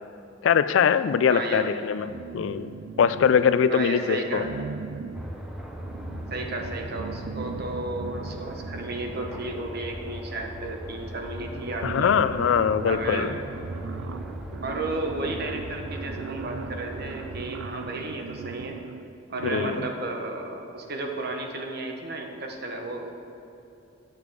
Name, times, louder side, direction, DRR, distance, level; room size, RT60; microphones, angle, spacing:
voice 1, 0.4-2.1 2.3-2.7 3.0-4.5 11.8-13.4 19.4-19.9, left 7 dB, 80° left, 14 dB, 0.3 m, -22 dB
voice 2, 1.3-1.7 3.7-4.5 6.3-12.2 12.8-13.3 14.6-18.8 19.3-23.1, right 2 dB, 55° right, 3 dB, 1.0 m, -33 dB
sound 1, 2.0-3.8 4.3-10.0 10.9-11.0 11.3-20.1, right 6 dB, 70° right, 0.3 m, -39 dB
sound 2, 5.1-17.4, equal, 5° right, 0.6 m, -39 dB
8.8 x 6.7 x 4.7 m, 3.0 s
head